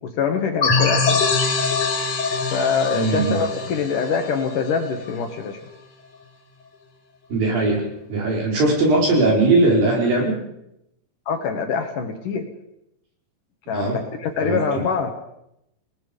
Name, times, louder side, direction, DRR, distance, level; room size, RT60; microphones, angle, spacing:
voice 1, 0.0-1.2 2.5-5.6 11.3-12.5 13.7-15.1, left 6 dB, 60° left, 5 dB, 2.8 m, -24 dB
sound 1, 0.6-5.1, left 4 dB, 40° left, 3.7 m, -23 dB
voice 2, 2.9-3.4 7.3-10.4 13.7-14.0 14.4-14.9, right 2 dB, 60° right, 0 dB, 6.4 m, -20 dB
27.5 x 19.0 x 5.3 m, 0.82 s
omnidirectional pair, 4.7 m